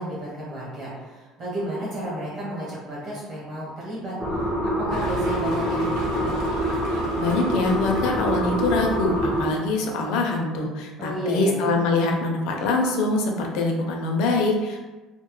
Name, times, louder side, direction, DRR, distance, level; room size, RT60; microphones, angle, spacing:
voice 1, 0.0-6.4 11.0-11.5, right 1 dB, 35° right, -7 dB, 1.0 m, -32 dB
sound 1, 4.2-9.5, equal, 20° right, 0.5 m, -25 dB
sound 2, 4.9-10.0, right 1 dB, 80° right, 0.7 m, -39 dB
voice 2, 7.2-14.8, left 3 dB, 65° left, 2 dB, 0.4 m, -24 dB
2.1 x 2.0 x 3.0 m, 1.2 s
cardioid pair, 170°, 0 cm